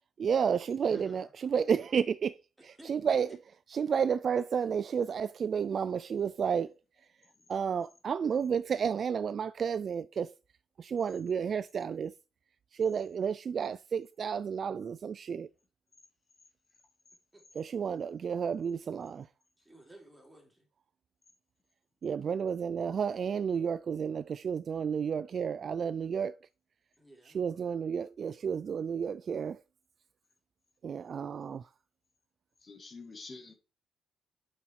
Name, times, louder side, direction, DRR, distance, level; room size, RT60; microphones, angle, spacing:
voice 1, 0.2-2.4 2.9-3.3 3.7-6.7 7.5-10.3 10.8-12.1 12.7-15.5 17.6-19.3 22.0-26.4 27.3-29.6 30.8-31.6, right 7 dB, 40° right, 0.3 m, -31 dB
voice 2, 0.7-1.2 32.6-33.5, left 3 dB, 30° left, 1.9 m, -48 dB
voice 3, 2.7-3.2 17.3-17.4 19.6-20.7 27.0-27.7, right 1 dB, 5° right, 3.4 m, -56 dB
8.8 x 5.5 x 4.6 m
cardioid pair, 130°, 0 cm